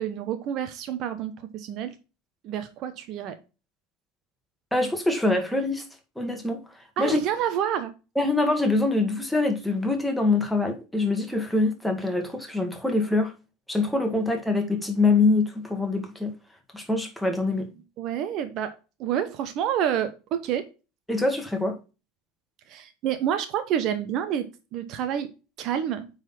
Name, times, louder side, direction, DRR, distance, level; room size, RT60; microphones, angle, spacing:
voice 1, 0.0-1.9 2.4-3.4 7.0-7.9 18.0-18.7 19.0-20.7 22.7-25.3 25.6-26.1, right 9 dB, 50° right, 0.9 m, -28 dB
voice 2, 4.7-5.8 6.2-6.6 7.0-7.2 8.2-13.3 13.7-16.3 16.7-17.7 21.1-21.8, left 2 dB, 5° left, 1.9 m, -24 dB
8.9 x 4.1 x 4.3 m
hypercardioid pair, 75°, 0 cm